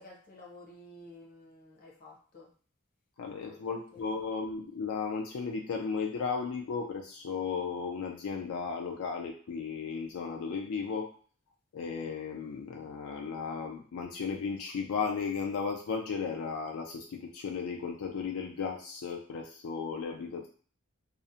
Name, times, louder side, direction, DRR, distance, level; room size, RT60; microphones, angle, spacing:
voice 1, 0.0-2.5 3.4-4.1, left 1 dB, 40° left, -2 dB, 0.6 m, -52 dB
voice 2, 3.2-11.1 11.7-20.5, left 5 dB, 80° left, 1 dB, 0.4 m, -35 dB
2.4 x 2.0 x 2.7 m, 0.42 s
head